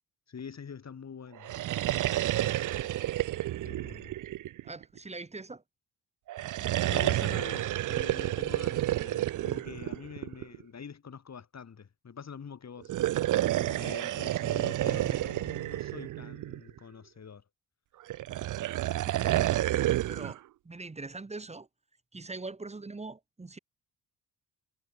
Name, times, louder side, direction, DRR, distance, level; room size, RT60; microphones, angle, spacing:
voice 1, 0.3-1.5 3.6-4.1 6.8-12.9 13.5-17.4, left 6 dB, 40° left, 5.6 m, -45 dB
sound 1, 1.4-5.0 6.3-10.6 12.8-16.8 18.1-20.4, right 14 dB, 50° right, 0.5 m, -30 dB
voice 2, 4.6-5.6 19.0-19.5 20.1-21.7 22.1-23.6, right 3 dB, 15° right, 1.3 m, -42 dB
cardioid pair, 120°, 40 cm